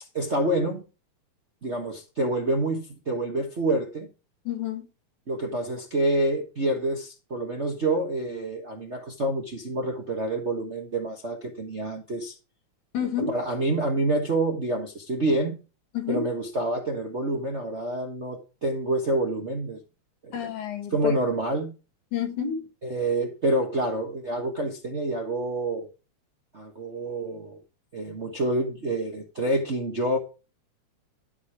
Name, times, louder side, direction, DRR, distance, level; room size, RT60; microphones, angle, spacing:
voice 1, 0.1-0.8 1.6-4.1 5.3-12.3 13.3-15.6 16.1-19.8 20.2-20.4 20.9-21.7 22.8-25.9 26.5-27.6 27.9-30.2, right 1 dB, 50° right, 0.8 m, -27 dB
voice 2, 4.4-4.8 12.9-13.4 15.9-16.3 20.3-21.1 22.1-22.6, left 8 dB, 90° left, 3.5 m, -28 dB
12.5 x 5.1 x 4.8 m
omnidirectional pair, 3.3 m